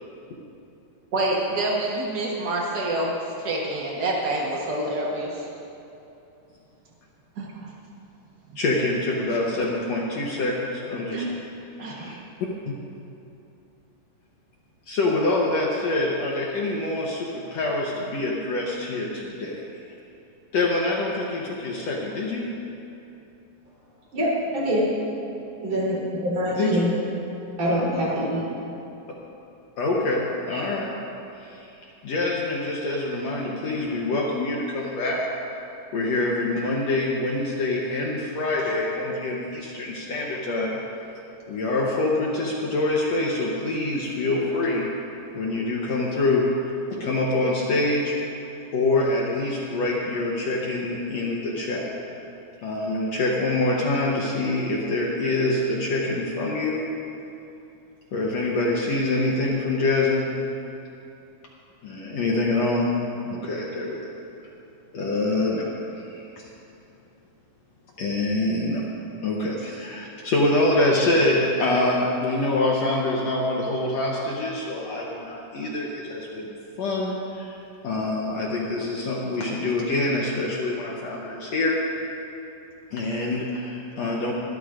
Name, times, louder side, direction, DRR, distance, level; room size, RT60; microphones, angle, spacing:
voice 1, 1.1-3.1 3.4-5.5 7.4-7.6 11.1-11.3 11.8-12.1, right 2 dB, 80° right, -3 dB, 0.9 m, -27 dB
voice 2, 8.6-11.3 11.9-12.2 14.9-19.7 20.5-22.5 26.6-26.8 29.8-30.9 31.4-31.7 32.0-35.3 35.9-40.8 41.5-44.9 45.3-46.5 46.9-48.1 48.7-51.9 52.6-56.9 58.1-60.3 61.8-62.9 63.2-64.0 64.9-65.7 65.9-66.3 68.0-68.8 69.2-77.5 77.8-81.8 82.9-84.3, left 2 dB, 65° left, -3 dB, 1.8 m, -25 dB
voice 3, 24.1-24.9 25.6-26.9 27.6-28.5, equal, 50° right, -7 dB, 4.7 m, -24 dB
23.0 x 13.0 x 2.6 m, 2.8 s
omnidirectional pair, 4.0 m